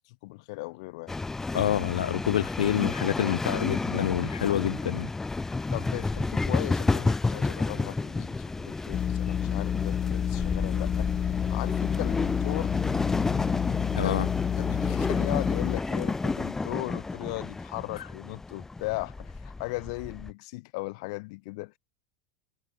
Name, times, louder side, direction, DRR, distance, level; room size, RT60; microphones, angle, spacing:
voice 1, 0.1-1.1 5.7-11.1 11.5-12.7 14.0-14.1 14.6-21.8, left 25 dB, 65° left, 5.3 m, -37 dB
sound 1, 1.1-20.3, left 3 dB, 10° left, 2.4 m, -31 dB
voice 2, 1.5-5.1 13.9-14.3 18.0-18.1, left 11 dB, 90° left, 2.9 m, -27 dB
sound 2, 8.9-15.8, left 9 dB, 30° left, 1.3 m, -29 dB
hypercardioid pair, 110°, 4 cm